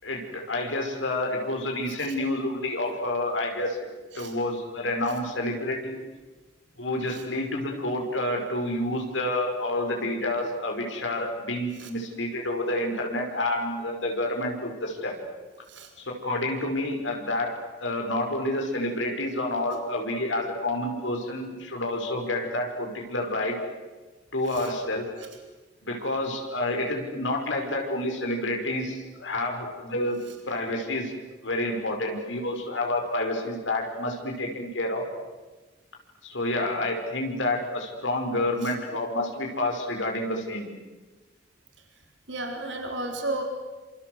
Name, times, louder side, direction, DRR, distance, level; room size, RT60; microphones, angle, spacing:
voice 1, 0.0-3.9 4.2-6.0 6.8-15.1 16.0-17.5 17.8-23.6 24.3-25.1 25.8-30.2 30.5-31.1 31.4-35.1 36.2-40.7, left 1 dB, 90° left, 2 dB, 5.6 m, -29 dB
voice 2, 42.3-43.4, right 2 dB, 75° right, 4 dB, 3.9 m, -33 dB
27.0 x 26.5 x 8.1 m, 1.3 s
head